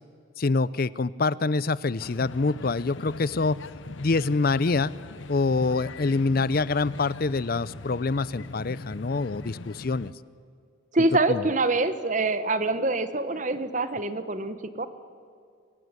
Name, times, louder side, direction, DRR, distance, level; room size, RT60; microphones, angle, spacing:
voice 1, 0.4-3.6 4.0-4.9 5.3-10.1 11.3-11.5, left 3 dB, 45° left, 20 dB, 0.5 m, -25 dB
sound 1, 2.0-10.1, left 3 dB, 65° left, 0.9 m, -41 dB
voice 2, 10.9-14.9, right 2 dB, 35° right, 12 dB, 1.2 m, -25 dB
28.0 x 16.0 x 9.7 m, 2.4 s
head